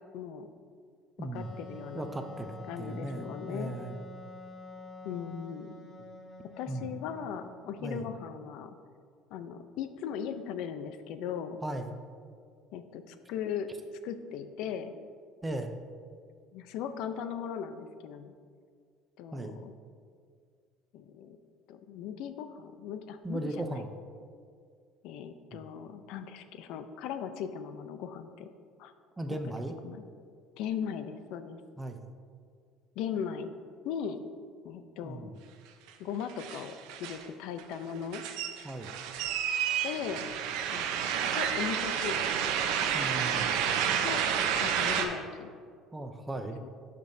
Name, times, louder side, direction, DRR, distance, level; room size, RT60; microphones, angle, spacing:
voice 1, 0.1-0.5 1.2-2.1 2.7-3.7 5.0-5.8 6.4-8.8 9.3-11.6 12.7-13.7 14.0-14.9 16.5-18.3 19.2-19.7 20.9-21.4 21.7-23.9 25.0-28.5 28.8-28.9 29.3-29.4 29.8-30.0 30.6-31.6 33.0-33.5 33.8-34.2 34.6-35.3 36.0-36.7 37.0-38.2 39.8-40.3 40.7-40.9 41.3-42.3 44.0-44.3 44.6-45.5 46.6-46.7, left 8 dB, 65° left, 10 dB, 0.5 m, -38 dB
voice 2, 1.2-1.5 2.0-4.0 6.7-6.9 7.8-8.0 11.6-11.9 15.4-15.7 19.3-19.6 23.2-23.9 25.5-25.6 29.2-29.7 31.8-32.0 35.0-35.3 38.6-39.0 42.9-43.5 45.9-46.6, right 1 dB, 10° right, 5 dB, 0.4 m, -37 dB
Wind instrument woodwind instrument, 1.3-7.8, left 2 dB, 25° left, 0.8 m, -47 dB
sound 1, 35.9-36.0 36.2-37.3 37.6-45.1, right 8 dB, 75° right, 0.6 m, -30 dB
11.5 x 5.2 x 2.7 m, 2.1 s
cardioid pair, 140°, 0 cm